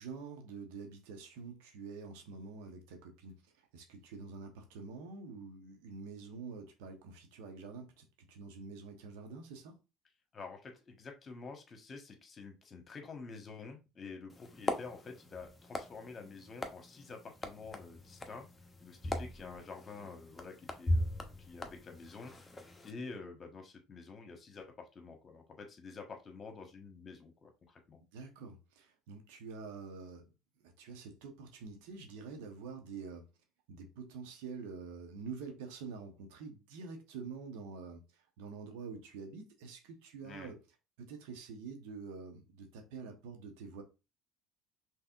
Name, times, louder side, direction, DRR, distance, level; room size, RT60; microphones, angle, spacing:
voice 1, 0.0-9.8 28.1-30.3 30.6-33.2 33.7-40.6 41.0-43.8, right 5 dB, 70° right, 1.1 m, -47 dB
voice 2, 10.3-18.5 18.8-28.0 40.2-40.5, left 4 dB, 35° left, 1.3 m, -49 dB
sound 1, 14.3-22.9, left 1 dB, 20° left, 1.0 m, -40 dB
5.5 x 3.3 x 2.5 m
hypercardioid pair, 60°, 0 cm